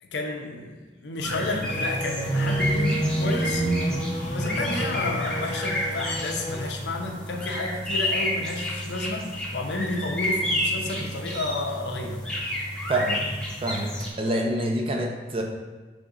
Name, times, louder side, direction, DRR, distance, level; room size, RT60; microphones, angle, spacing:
voice 1, 0.0-3.7 4.3-12.2, left 2 dB, 75° left, 2 dB, 0.6 m, -31 dB
sound 1, 1.2-14.1, equal, 5° left, 0.7 m, -29 dB
sound 2, 1.7-6.7, right 1 dB, 45° left, 0.8 m, -34 dB
voice 2, 12.9-13.2 13.6-15.4, right 1 dB, 30° right, 1 dB, 0.5 m, -26 dB
3.9 x 3.4 x 3.8 m, 1.2 s
head